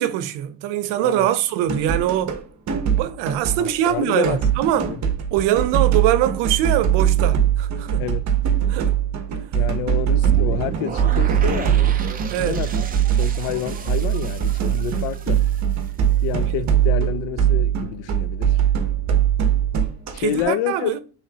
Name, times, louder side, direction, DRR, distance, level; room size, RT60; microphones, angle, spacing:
voice 1, 0.0-2.4 3.0-5.0 5.3-8.1 8.7-8.9 12.3-12.6 20.2-21.0, right 12 dB, 75° right, 0.7 m, -22 dB
sound 1, 1.7-2.4 2.7-4.0 4.2-20.4, right 9 dB, 40° right, 1.0 m, -21 dB
voice 2, 3.6-4.4 4.9-5.0 8.0-8.3 9.5-11.9 12.4-12.8 13.2-15.4 16.2-18.6 20.1-20.9, left 11 dB, 85° left, 0.6 m, -28 dB
sound 2, 10.2-16.3, right 6 dB, 20° right, 0.4 m, -34 dB
5.8 x 3.2 x 2.8 m
cardioid pair, 130°, 42 cm